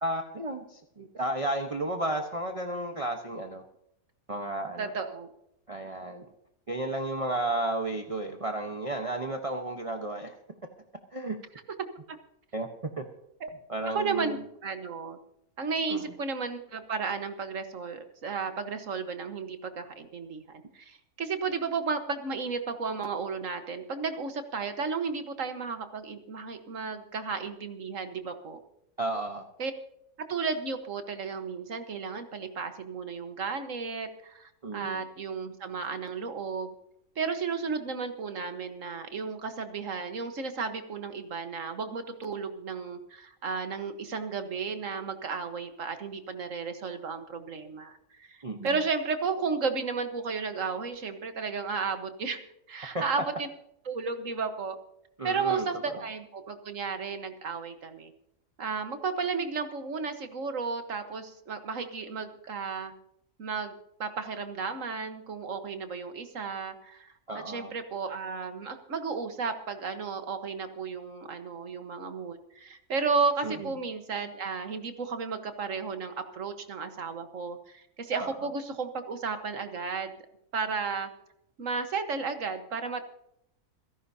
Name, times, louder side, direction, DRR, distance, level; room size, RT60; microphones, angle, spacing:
voice 1, 0.0-3.6 4.3-4.9 5.7-6.3 6.7-10.3 11.1-11.4 12.5-12.7 13.0-13.1 13.7-14.4 15.9-16.1 29.0-29.4 34.6-35.0 48.4-48.8 52.9-53.0 55.2-56.0 67.3-67.7 73.4-73.7 78.2-78.3, right 2 dB, 25° right, 4 dB, 1.1 m, -33 dB
voice 2, 4.8-5.3 12.1-12.2 13.4-13.5 13.9-15.2 15.6-28.6 29.6-29.7 30.2-36.7 37.1-48.4 48.6-52.4 52.7-53.5 53.8-54.8 55.2-58.1 58.6-62.9 63.4-80.1 80.5-81.1 81.6-83.0, right 5 dB, 60° right, 8 dB, 1.7 m, -33 dB
27.5 x 11.0 x 2.8 m, 0.78 s
omnidirectional pair, 1.6 m